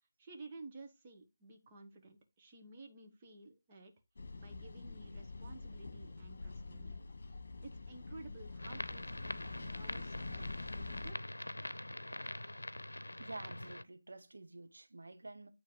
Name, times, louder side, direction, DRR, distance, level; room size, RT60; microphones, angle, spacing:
voice 1, 0.2-3.9 4.4-11.2, right 3 dB, 25° right, 1.5 m, -54 dB
sound 1, 4.2-11.1, left 3 dB, 50° left, 1.6 m, -46 dB
sound 2, 8.6-13.8, left 1 dB, 85° left, 0.7 m, -44 dB
voice 2, 13.2-15.5, right 2 dB, 70° right, 1.1 m, -49 dB
9.1 x 3.3 x 6.8 m
figure-of-eight pair, 160°, 0 cm